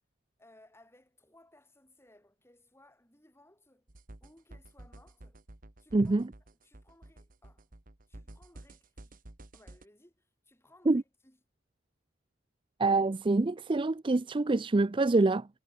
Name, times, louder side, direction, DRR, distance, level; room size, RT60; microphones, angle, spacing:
voice 1, 0.4-3.9 4.2-5.4 5.8-6.2 6.6-7.7 8.1-9.2 9.5-11.4, left 1 dB, 10° left, 7.2 m, -62 dB
sound 1, 3.9-9.9, right 1 dB, 45° right, 1.3 m, -52 dB
voice 2, 5.9-6.3 10.9-11.0 12.8-15.5, right 3 dB, 25° right, 0.4 m, -26 dB
head